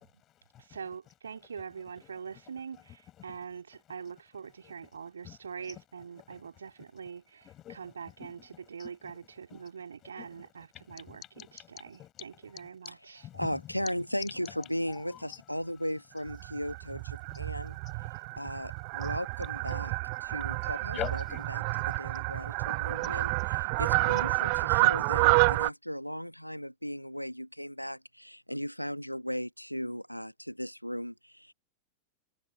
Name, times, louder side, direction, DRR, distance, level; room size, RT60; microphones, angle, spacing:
voice 1, 0.0-0.8 2.0-3.4 4.6-5.0 5.2-7.1 7.4-9.7 10.0-13.9 14.4-15.4 15.8-15.9 17.3-18.2 19.0-19.1 19.7-19.8 20.6-21.4 22.4-22.5 22.8-22.9 23.9-24.2, left 12 dB, 30° left, 6.9 m, -47 dB
voice 2, 0.6-8.4 8.7-11.2 11.7-13.0, right 6 dB, 70° right, 2.7 m, -43 dB
voice 3, 13.3-17.8 18.3-19.9 20.2-21.0 21.5-31.5, equal, 90° left, 1.6 m, -37 dB
Fowl, 16.3-25.7, right 33 dB, 45° right, 0.4 m, -29 dB
figure-of-eight pair, 90°, 0 cm